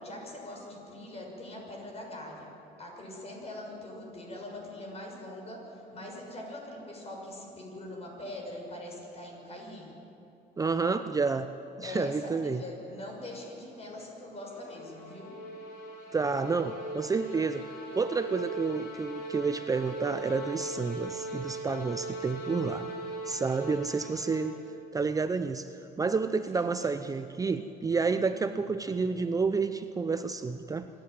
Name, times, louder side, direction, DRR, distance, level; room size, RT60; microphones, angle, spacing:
voice 1, 0.0-2.5 2.8-9.9 11.8-15.4 22.3-22.9 26.5-27.2 28.0-28.3, left 1 dB, 40° left, 0 dB, 6.4 m, -43 dB
voice 2, 10.6-11.5 11.8-12.6 16.1-22.9 23.3-24.6 24.9-25.7 26.0-30.9, right 4 dB, 20° right, 10 dB, 0.6 m, -30 dB
sound 1, 14.3-24.8, right 2 dB, 75° left, 4.2 m, -40 dB
26.0 x 11.5 x 9.1 m, 2.8 s
cardioid pair, 110°, 17 cm